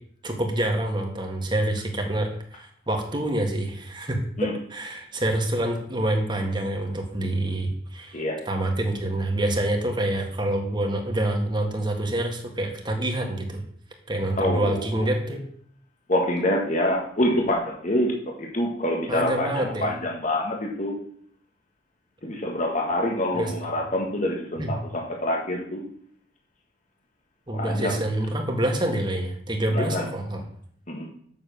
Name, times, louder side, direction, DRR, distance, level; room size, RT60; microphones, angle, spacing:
voice 1, 0.2-13.6 14.1-15.4 19.1-19.9 23.3-23.5 24.6-24.7 27.5-30.4, right 1 dB, 25° right, 2 dB, 1.8 m, -27 dB
voice 2, 14.4-15.1 16.1-20.9 22.2-25.8 27.5-28.0 29.7-30.0 30.9-31.1, left 1 dB, 40° left, 0 dB, 1.7 m, -26 dB
7.3 x 7.0 x 7.0 m, 0.63 s
head